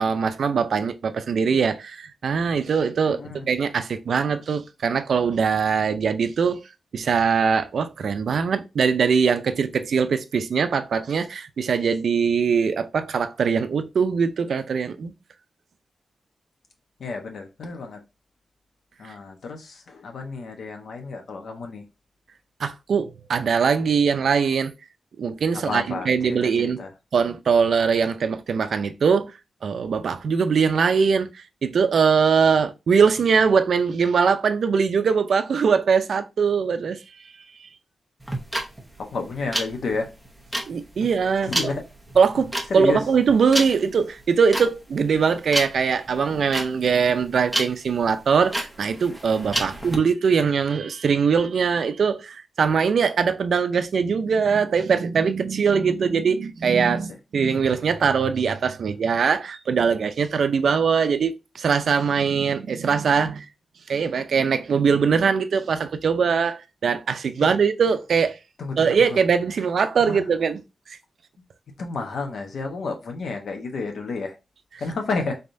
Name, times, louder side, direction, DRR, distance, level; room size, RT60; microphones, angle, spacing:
voice 1, 0.0-3.2 3.5-6.6 6.9-15.1 19.0-19.1 22.6-24.7 25.2-26.8 27.1-29.3 29.6-31.3 31.6-37.0 40.7-41.5 42.2-63.5 63.9-68.4 68.8-70.6, right 6 dB, 70° right, 0.4 m, -21 dB
voice 2, 3.1-3.5 17.0-18.0 19.0-21.8 25.5-26.9 39.0-40.1 41.4-41.8 42.7-43.0 49.6-49.8 67.4-67.5 68.6-69.2 70.0-70.3 71.8-74.4 74.8-75.4, left 3 dB, 85° left, 1.0 m, -31 dB
sound 1, 38.2-50.0, right 1 dB, ahead, 0.9 m, -30 dB
4.0 x 3.5 x 2.6 m
wide cardioid pair, 165°, 0 cm